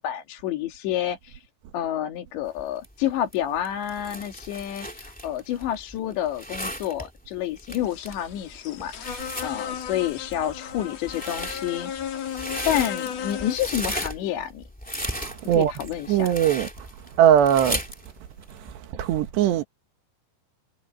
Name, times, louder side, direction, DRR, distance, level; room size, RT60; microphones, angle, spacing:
voice 1, 0.0-1.5 1.7-12.3 12.6-14.6 15.5-16.3, left 11 dB, 90° left, 4.4 m, -29 dB
sound 1, 2.5-18.7, equal, 5° left, 1.7 m, -36 dB
sound 2, 7.8-13.6, left 8 dB, 55° left, 2.1 m, -35 dB
voice 2, 15.2-15.7 16.1-16.7 17.2-17.8 19.0-19.6, right 10 dB, 80° right, 3.8 m, -20 dB
omnidirectional pair, 4.9 m